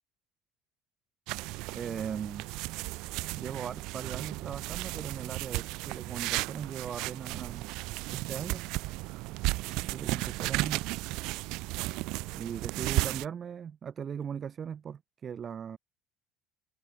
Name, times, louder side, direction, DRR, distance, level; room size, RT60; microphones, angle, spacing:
sound 1, 1.3-13.3, right 22 dB, 75° right, 1.0 m, -34 dB
voice 1, 1.7-2.5 3.4-7.7 8.1-8.7 9.8-10.8 12.3-15.8, right 7 dB, 35° right, 2.7 m, -39 dB
cardioid pair, 115°, 0 cm